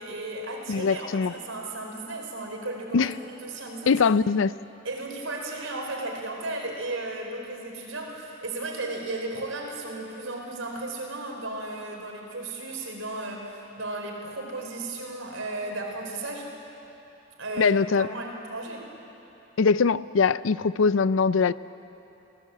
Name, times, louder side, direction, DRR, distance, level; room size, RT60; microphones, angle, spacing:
voice 1, 0.0-3.1 3.4-4.0 4.8-16.5 17.4-18.9, right 2 dB, 85° right, 1 dB, 4.4 m, -35 dB
voice 2, 0.7-1.3 2.9-3.1 3.9-4.5 17.6-18.1 19.6-21.5, left 5 dB, 75° left, 17 dB, 0.5 m, -22 dB
26.0 x 17.0 x 8.4 m, 3.0 s
head